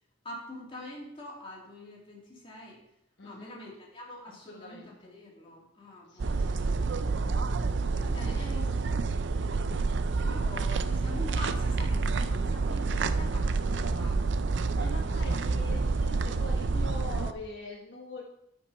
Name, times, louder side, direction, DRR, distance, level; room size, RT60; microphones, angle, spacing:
voice 1, 0.2-2.8 3.2-6.8 8.0-8.7 10.2-15.0, left 1 dB, 25° left, -3 dB, 2.4 m, -45 dB
voice 2, 3.2-3.6 4.3-5.1 6.1-6.8 8.1-8.5 14.7-18.2, left 2 dB, 60° left, -2 dB, 1.2 m, -44 dB
sound 1, 6.2-17.3, right 3 dB, 60° right, 0.5 m, -28 dB
10.5 x 5.3 x 5.5 m, 0.78 s
head